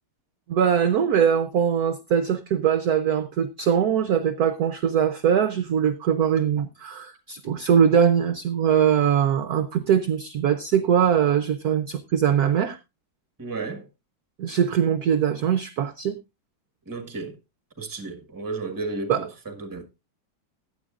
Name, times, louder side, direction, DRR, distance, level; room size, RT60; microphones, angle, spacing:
voice 1, 0.5-12.8 14.4-16.2 19.1-19.2, right 8 dB, 65° right, 1.0 m, -22 dB
voice 2, 13.4-13.9 16.8-17.4 17.8-19.9, right 3 dB, 10° right, 1.2 m, -33 dB
16.0 x 10.5 x 2.4 m
omnidirectional pair, 2.3 m